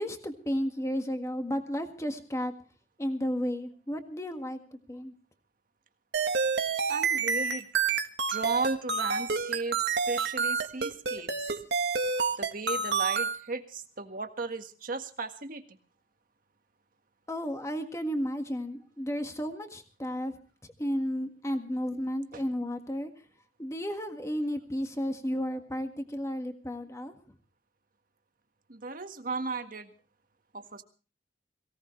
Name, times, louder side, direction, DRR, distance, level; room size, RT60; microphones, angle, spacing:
voice 1, 0.0-2.5 3.0-5.1 17.3-23.2 23.6-27.4, equal, 15° left, 6 dB, 1.7 m, -33 dB
sound 1, 6.1-13.4, right 5 dB, 70° right, 1.6 m, -28 dB
voice 2, 6.9-7.7 8.3-11.3 12.4-15.8 22.3-22.4 28.7-29.9 30.5-30.8, right 3 dB, 50° right, 6 dB, 1.7 m, -35 dB
23.0 x 17.0 x 3.2 m, 0.37 s
head